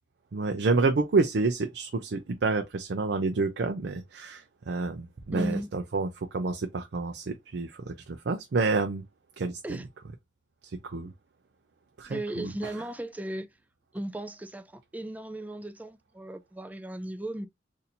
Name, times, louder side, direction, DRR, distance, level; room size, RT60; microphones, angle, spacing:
voice 1, 0.3-9.0 9.4-9.8 10.6-11.1 12.0-12.5, right 3 dB, 65° right, 0.5 m, -29 dB
voice 2, 5.3-5.7 9.6-9.8 12.0-13.5 13.9-17.5, right 1 dB, 10° right, 0.4 m, -36 dB
4.2 x 2.7 x 2.6 m
head